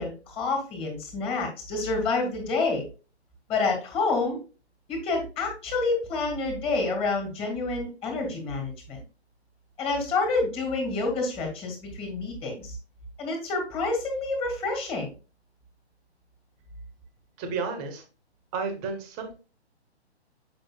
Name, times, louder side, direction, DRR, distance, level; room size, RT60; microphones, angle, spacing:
voice 1, 0.0-2.8 3.5-4.4 4.9-9.0 9.8-12.8 13.2-15.1, left 3 dB, 15° left, 2 dB, 2.1 m, -28 dB
voice 2, 17.4-18.0 18.5-19.3, right 4 dB, 20° right, 6 dB, 1.2 m, -32 dB
7.7 x 5.7 x 2.3 m, 0.33 s
figure-of-eight pair, 130°, 33 cm